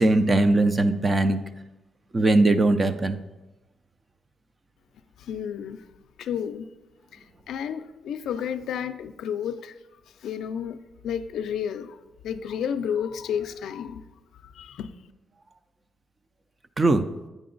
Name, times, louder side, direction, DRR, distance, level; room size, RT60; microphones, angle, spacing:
voice 1, 0.0-1.4 2.1-3.2 16.8-17.0, right 2 dB, 25° right, 0.4 m, -20 dB
voice 2, 5.2-5.8 6.2-6.7 7.5-9.7 10.2-12.0 12.2-14.0 14.4-14.9, left 8 dB, 80° left, 0.4 m, -31 dB
8.5 x 5.0 x 3.8 m
cardioid pair, 135°, 0 cm